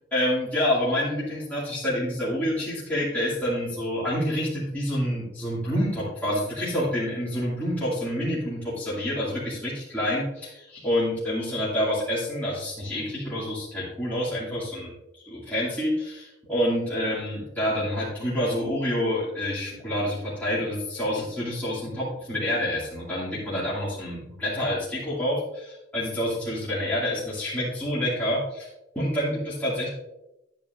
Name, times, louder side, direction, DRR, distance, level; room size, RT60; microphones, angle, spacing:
voice 1, 0.1-28.7 28.9-29.9, left 1 dB, 10° left, -10 dB, 2.4 m, -28 dB
10.0 x 8.7 x 2.6 m, 0.91 s
head